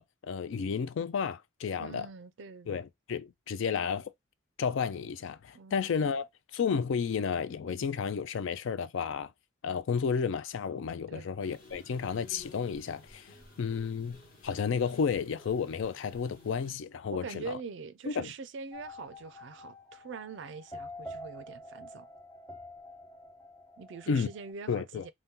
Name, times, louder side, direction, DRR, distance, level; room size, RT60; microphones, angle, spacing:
voice 1, 0.0-2.1 2.7-4.1 4.6-6.3 6.5-9.3 9.6-13.3 13.6-17.6 18.1-18.3 24.1-24.3 24.7-25.0, left 6 dB, 65° left, 0.3 m, -32 dB
voice 2, 1.8-2.8 5.5-6.1 11.1-11.3 17.1-22.1 23.8-25.1, right 5 dB, 60° right, 0.4 m, -44 dB
sound 1, 11.4-16.7, left 2 dB, 45° left, 0.9 m, -53 dB
sound 2, 18.7-24.5, left 1 dB, 15° left, 0.9 m, -47 dB
2.8 x 2.2 x 3.5 m
head